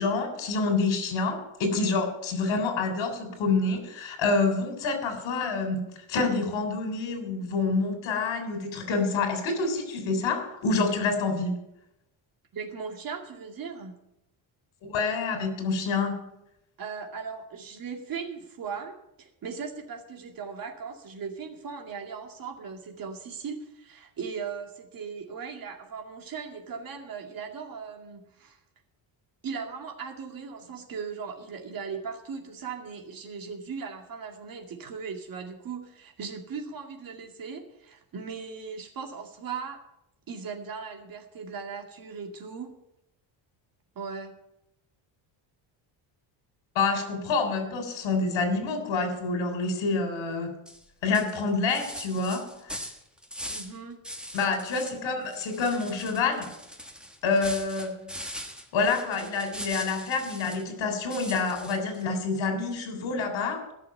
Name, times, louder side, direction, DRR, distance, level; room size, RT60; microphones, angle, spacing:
voice 1, 0.0-11.6 14.8-16.3 46.8-50.5 51.0-52.8 54.3-56.5 57.2-58.1 58.7-63.7, left 4 dB, 70° left, 5 dB, 3.7 m, -27 dB
voice 2, 12.5-14.0 16.8-28.6 29.4-39.8 40.3-42.8 44.0-44.4 53.5-54.0, right 5 dB, 45° right, 3 dB, 2.3 m, -38 dB
sound 1, 50.7-50.8 51.1-53.8 54.0-55.0 55.3-60.7 61.1-62.0, equal, ahead, 1.3 m, -41 dB
15.0 x 6.8 x 8.7 m, 0.84 s
cardioid pair, 165°, 47 cm